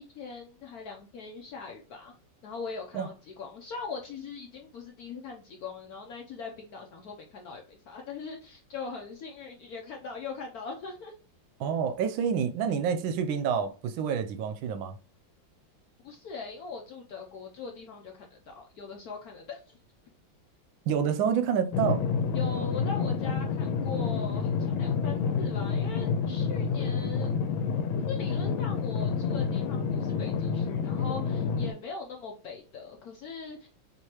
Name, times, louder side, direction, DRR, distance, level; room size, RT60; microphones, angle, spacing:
voice 1, 0.0-2.1 2.4-11.1 16.0-19.8 22.3-27.3 28.0-33.7, left 4 dB, 70° left, 0.9 m, -41 dB
voice 2, 11.6-15.0 20.9-22.0, right 7 dB, 80° right, 1.3 m, -28 dB
sound 1, 21.7-31.7, left 6 dB, 90° left, 1.4 m, -29 dB
4.6 x 3.3 x 2.9 m
omnidirectional pair, 2.2 m